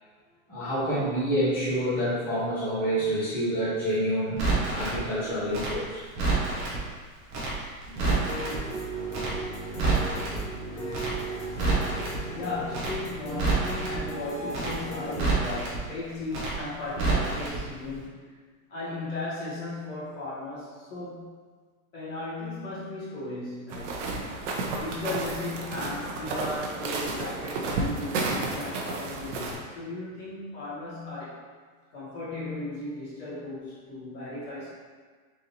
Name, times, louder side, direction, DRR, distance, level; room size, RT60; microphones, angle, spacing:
voice 1, 0.5-4.4 4.6-6.0 7.9-8.1, equal, 5° left, -14 dB, 1.2 m, -28 dB
Crackle, 4.4-5.0 5.5-6.8 7.3-7.5 7.8-8.6 9.1-9.3 9.6-10.4 10.9-11.1 11.4-12.2 12.7-12.9 13.2-14.0 14.5-14.7 15.0-15.8 16.3-16.5 16.8-17.6 17.8-18.0, right 3 dB, 20° right, 0.4 m, -27 dB
sound 1, 8.0-15.3, right 2 dB, 65° left, 1.3 m, -36 dB
voice 2, 12.3-18.3 18.7-21.3 21.9-24.1 24.7-31.4 31.9-34.7, left 2 dB, 40° left, -10 dB, 1.5 m, -36 dB
sound 2, 23.7-29.6, right 3 dB, 60° right, 0.7 m, -32 dB
3.9 x 2.6 x 2.8 m, 1.5 s
supercardioid pair, 145°, 42 cm